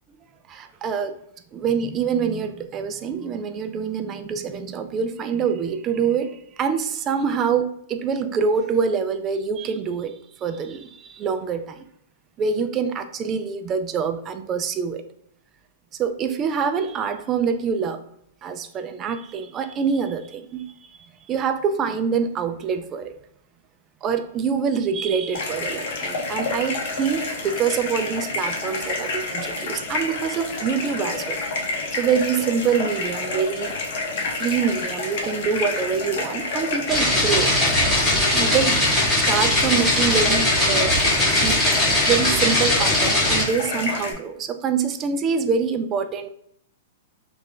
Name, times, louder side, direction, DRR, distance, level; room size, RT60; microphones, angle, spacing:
voice 1, 0.5-1.2 1.5-11.8 12.4-15.0 16.0-18.0 18.4-21.0 21.3-23.2 24.0-31.4 31.9-33.8 34.4-37.5 38.3-40.9 41.4-41.6 42.1-46.3, right 6 dB, 25° right, 9 dB, 0.3 m, -25 dB
sound 1, 25.3-44.1, left 3 dB, 55° left, 1.0 m, -29 dB
sound 2, 36.9-43.4, left 1 dB, 5° left, 1.5 m, -20 dB
3.2 x 2.5 x 3.7 m, 0.69 s
hypercardioid pair, 150°, 0 cm